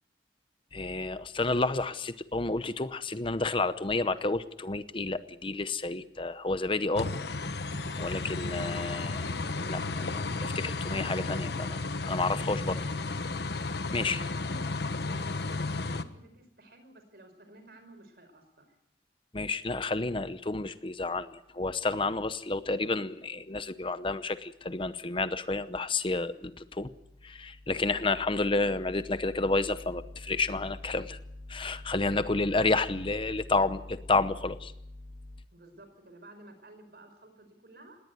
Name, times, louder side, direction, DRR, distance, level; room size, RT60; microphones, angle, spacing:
voice 1, 0.7-7.1 8.0-9.3 9.6-11.8 12.1-12.8 13.9-14.2 19.3-26.9 27.2-31.2 31.5-34.7, left 3 dB, 30° left, 13 dB, 0.8 m, -30 dB
sound 1, 6.9-16.0, left 3 dB, 70° left, 1.2 m, -33 dB
voice 2, 14.0-14.8 15.0-18.8 35.5-38.0, right 1 dB, 60° right, 8 dB, 4.9 m, -52 dB
20.0 x 18.0 x 9.2 m, 0.78 s
head